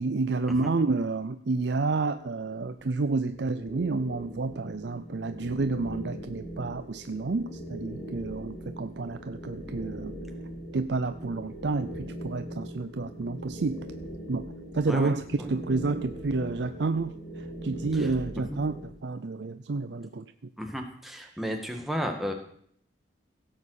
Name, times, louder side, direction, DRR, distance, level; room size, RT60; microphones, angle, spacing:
voice 1, 0.0-10.1 10.7-13.8 14.3-14.5 14.7-18.8 19.0-20.3, right 3 dB, 65° right, 10 dB, 0.5 m, -30 dB
sound 1, 2.1-18.9, right 1 dB, 55° left, 3.2 m, -41 dB
voice 2, 14.9-15.5 17.9-18.1 18.5-18.6 20.6-22.3, equal, ahead, 2 dB, 1.7 m, -33 dB
16.5 x 7.5 x 6.5 m, 0.62 s
head